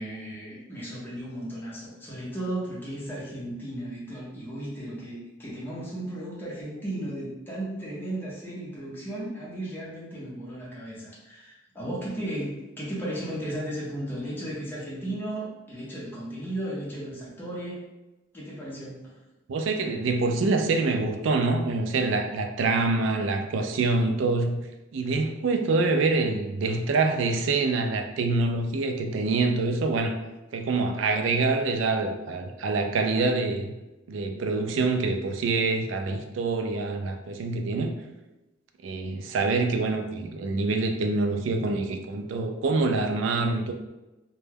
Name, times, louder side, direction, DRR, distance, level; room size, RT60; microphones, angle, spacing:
voice 1, 0.0-17.8 18.3-19.1, right 1 dB, 10° left, -7 dB, 0.6 m, -35 dB
voice 2, 19.5-24.6 24.9-30.2 30.5-33.7 34.1-37.9 38.8-43.7, right 3 dB, 75° right, 5 dB, 0.3 m, -25 dB
2.2 x 2.1 x 3.2 m, 1.0 s
head